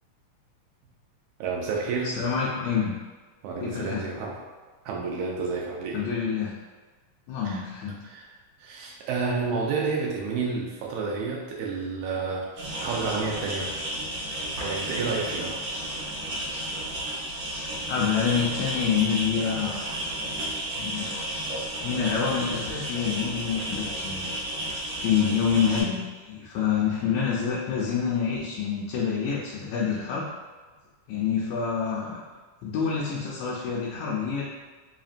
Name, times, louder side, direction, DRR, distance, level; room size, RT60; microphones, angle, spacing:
voice 1, 1.4-2.1 3.4-4.3 4.9-6.0 7.5-7.6 8.0-8.3 8.6-13.7 14.6-15.6, right 4 dB, 80° right, -2 dB, 1.8 m, -30 dB
voice 2, 2.0-3.0 3.6-4.1 5.9-6.6 7.3-8.0 17.9-19.8 20.7-21.2 21.8-24.4 24.9-30.3 31.1-32.2 32.6-34.4, left 6 dB, 80° left, -4 dB, 1.7 m, -27 dB
sound 1, 12.6-25.8, right 1 dB, 55° right, 2.2 m, -32 dB
4.9 x 2.8 x 2.5 m, 1.4 s
omnidirectional pair, 3.7 m